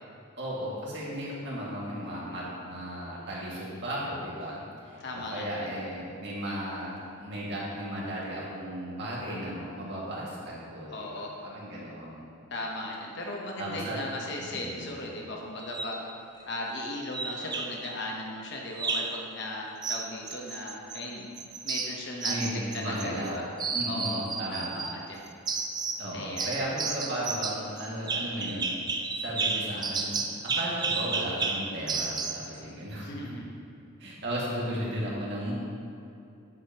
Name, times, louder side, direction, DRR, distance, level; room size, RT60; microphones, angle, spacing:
voice 1, 0.4-10.9 11.4-12.3 13.6-14.0 14.4-14.9 22.2-23.4 23.7-24.8 26.0-28.8 29.2-33.4 34.0-35.5, equal, 55° right, -6 dB, 2.1 m, -35 dB
voice 2, 5.0-5.7 10.9-11.3 12.5-16.0 16.5-21.3 21.6-23.4 23.9-24.3 24.5-25.2 26.1-26.6 33.0-33.5, left 1 dB, 55° left, -1 dB, 1.0 m, -37 dB
sound 1, 15.6-16.0 17.1-17.9 18.8-19.2 19.8-21.0 21.4-23.3 23.6-24.9 25.5-26.1 26.4-32.5, right 4 dB, 20° right, 0.4 m, -32 dB
10.0 x 8.0 x 3.0 m, 2.7 s
head